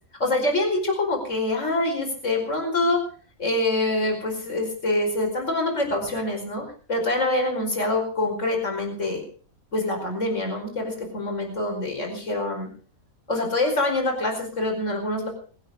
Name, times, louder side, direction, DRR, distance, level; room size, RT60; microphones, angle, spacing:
voice 1, 0.2-3.0 3.4-6.6 6.9-9.2 9.7-12.7 13.3-15.3, left 2 dB, 55° left, 2 dB, 5.3 m, -25 dB
23.5 x 9.1 x 6.6 m, 0.43 s
omnidirectional pair, 1.5 m